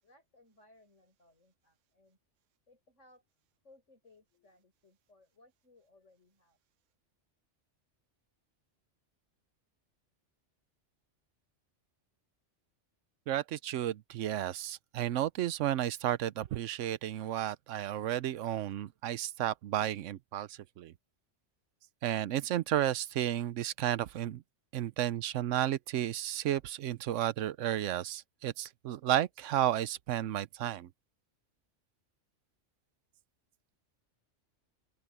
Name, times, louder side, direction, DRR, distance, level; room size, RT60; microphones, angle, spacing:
voice 1, 0.0-2.2 2.7-3.3 3.6-6.6, left 2 dB, 85° left, 7.3 m, -63 dB
voice 2, 13.3-20.9 22.0-24.4 24.7-30.9, right 12 dB, 80° right, 1.0 m, -32 dB
open air
omnidirectional pair, 1.2 m